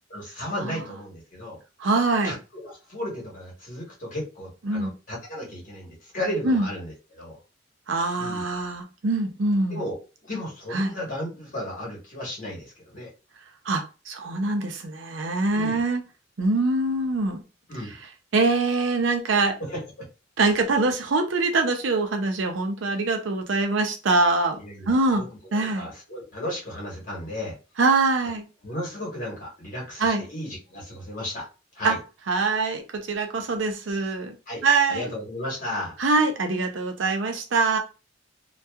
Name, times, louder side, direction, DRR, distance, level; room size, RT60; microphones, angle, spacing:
voice 1, 0.1-1.6 2.2-7.4 8.2-8.4 9.7-13.1 15.5-15.8 17.7-18.0 19.6-20.1 24.6-27.6 28.6-31.5 31.7-32.0 34.5-34.6 34.9-36.0, left 1 dB, 45° left, 1.3 m, -34 dB
voice 2, 1.8-2.3 4.7-4.9 6.4-6.7 7.9-9.8 10.7-10.9 13.7-16.0 16.4-17.4 18.3-19.6 20.4-24.6 24.9-25.2 25.5-25.9 27.8-28.4 30.0-30.2 31.8-32.0 32.3-34.4 34.6-35.0 36.0-37.8, right 3 dB, 75° right, 0.5 m, -23 dB
2.7 x 2.2 x 2.3 m
head